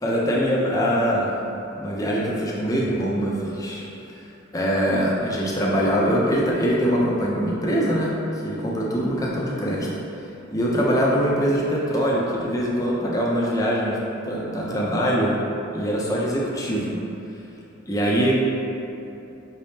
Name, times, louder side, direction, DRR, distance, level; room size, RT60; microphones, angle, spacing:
voice 1, 0.0-1.3 1.7-3.8 4.5-9.9 10.5-14.0 14.2-15.4 15.7-17.0 17.9-18.3, equal, 20° left, -5 dB, 0.6 m, -23 dB
5.2 x 3.5 x 2.8 m, 2.8 s
head